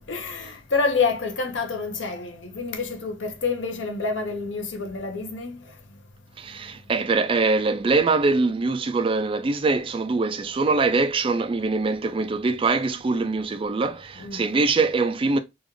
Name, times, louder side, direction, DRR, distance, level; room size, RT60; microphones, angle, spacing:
voice 1, 0.1-5.6 14.2-14.4, left 4 dB, 80° left, 1.0 m, -27 dB
voice 2, 6.4-15.4, right 3 dB, 30° right, 0.4 m, -23 dB
4.0 x 2.4 x 3.2 m
head